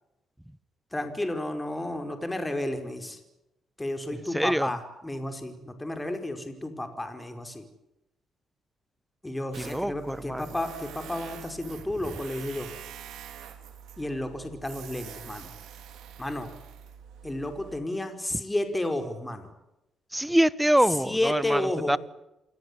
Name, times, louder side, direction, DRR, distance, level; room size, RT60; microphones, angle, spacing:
voice 1, 0.9-3.2 3.8-7.6 9.2-12.7 14.0-15.5 16.2-16.5 17.2-19.5 21.0-22.0, left 1 dB, 10° left, 7 dB, 4.9 m, -32 dB
voice 2, 4.3-4.7 9.6-10.4 20.1-22.0, right 1 dB, 5° right, 18 dB, 1.1 m, -25 dB
Tools, 9.5-17.8, right 8 dB, 80° right, 3.6 m, -45 dB
28.5 x 17.5 x 9.7 m, 0.91 s
cardioid pair, 90°, 0 cm